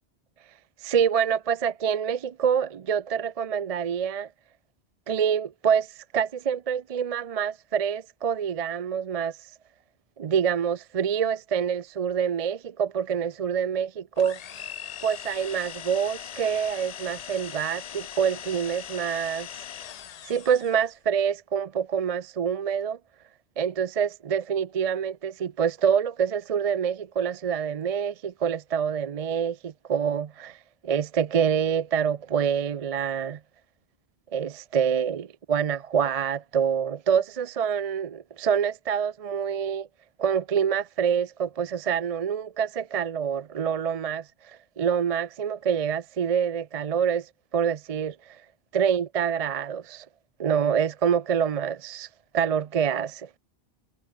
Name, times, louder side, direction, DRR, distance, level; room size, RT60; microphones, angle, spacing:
voice 1, 0.8-4.3 5.1-9.4 10.2-14.4 15.0-19.5 20.3-23.0 23.6-33.4 34.3-39.9 40.2-48.4 48.7-50.1 50.4-52.1 52.3-53.3, right 7 dB, 50° right, 0.5 m, -26 dB
sound 1, 14.2-20.9, left 9 dB, 50° left, 0.5 m, -40 dB
omnidirectional pair, 1.0 m